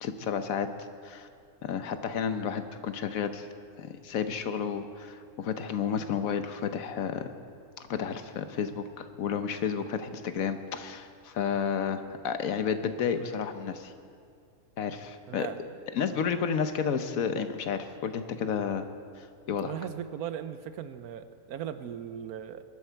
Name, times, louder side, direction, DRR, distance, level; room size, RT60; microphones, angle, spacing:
voice 1, 0.0-0.7 1.0-1.3 1.6-3.5 3.8-7.3 7.8-13.9 14.8-15.5 15.9-18.9 19.2-19.7, left 7 dB, 70° left, 9 dB, 1.2 m, -31 dB
voice 2, 19.6-22.6, right 9 dB, 85° right, 11 dB, 1.2 m, -38 dB
21.0 x 12.0 x 4.6 m, 2.2 s
omnidirectional pair, 1.5 m